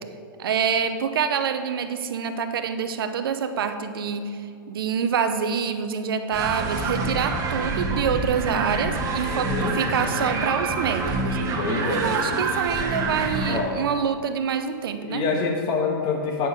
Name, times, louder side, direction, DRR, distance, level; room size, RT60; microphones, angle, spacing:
voice 1, 0.4-4.4 4.7-11.4 11.8-15.2, right 7 dB, 75° right, 9 dB, 0.7 m, -26 dB
sound 1, 6.3-13.6, right 3 dB, 30° right, 1.2 m, -26 dB
voice 2, 9.3-9.8 11.6-12.1 13.5-13.7 15.0-16.5, left 4 dB, 40° left, 1 dB, 1.7 m, -26 dB
8.6 x 6.4 x 5.2 m, 2.4 s
hypercardioid pair, 125°, 12 cm